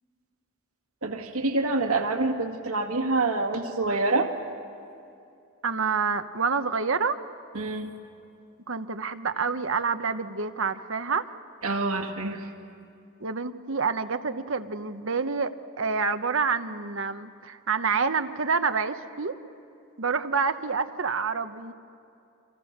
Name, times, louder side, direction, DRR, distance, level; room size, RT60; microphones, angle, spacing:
voice 1, 1.0-4.3 7.5-7.9 11.6-12.5, right 3 dB, 90° right, 4 dB, 2.2 m, -26 dB
voice 2, 5.6-7.2 8.7-11.3 13.2-19.4 20.0-21.7, right 5 dB, 65° right, 9 dB, 1.0 m, -28 dB
29.5 x 24.5 x 6.7 m, 2.6 s
head